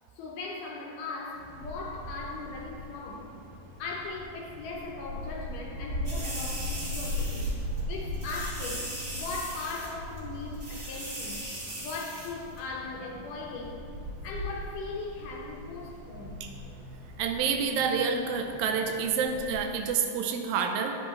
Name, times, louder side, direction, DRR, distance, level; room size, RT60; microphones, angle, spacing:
voice 1, 0.2-3.4 3.8-7.5 7.9-8.9 9.1-11.5 11.8-13.8 14.2-16.4, left 3 dB, 75° left, -1 dB, 2.2 m, -38 dB
Wind, 1.3-19.9, left 1 dB, 65° right, 2.8 m, -39 dB
sound 1, 6.0-7.5 7.8-7.9 8.1-9.9 10.2-10.3 10.5-12.3 12.6-12.7, right 1 dB, 30° right, 1.7 m, -39 dB
voice 2, 17.2-21.0, right 6 dB, 85° right, 4 dB, 2.4 m, -28 dB
10.5 x 7.5 x 3.1 m, 2.6 s
omnidirectional pair, 4.2 m